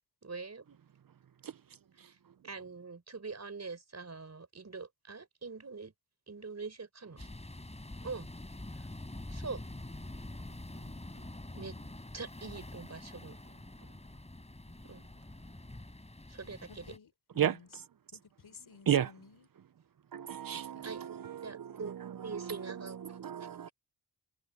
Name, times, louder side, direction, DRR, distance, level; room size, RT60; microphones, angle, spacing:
voice 1, 0.2-0.8 2.4-5.9 6.3-7.2 8.0-8.3 8.8-8.9 9.3-9.6 11.5-11.7 12.1-13.4 14.8-15.1 16.3-16.9 20.8-21.0 21.4-22.0 22.2-23.0 23.4-23.7, right 4 dB, 45° right, 4.9 m, -43 dB
sound 1, 7.2-17.0, left 1 dB, 15° left, 4.6 m, -46 dB
voice 2, 16.7-17.7 18.1-19.5 20.5-20.9, left 6 dB, 75° left, 4.3 m, -54 dB
voice 3, 17.4-17.8 18.9-19.1 20.1-23.7, right 10 dB, 60° right, 0.7 m, -34 dB
cardioid pair, 75°, 38 cm